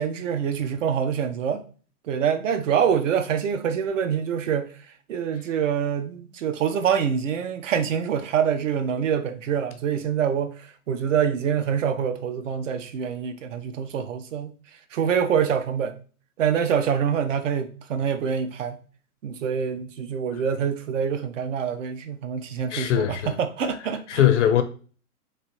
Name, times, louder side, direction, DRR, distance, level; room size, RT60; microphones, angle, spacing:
voice 1, 0.0-1.6 2.1-4.7 5.1-10.5 10.9-14.5 14.9-15.9 16.4-18.8 19.2-24.3, right 7 dB, 55° right, 0.6 m, -25 dB
voice 2, 22.7-23.4 24.1-24.6, left 11 dB, 55° left, 0.5 m, -20 dB
3.2 x 2.5 x 3.0 m
figure-of-eight pair, 120°, 44 cm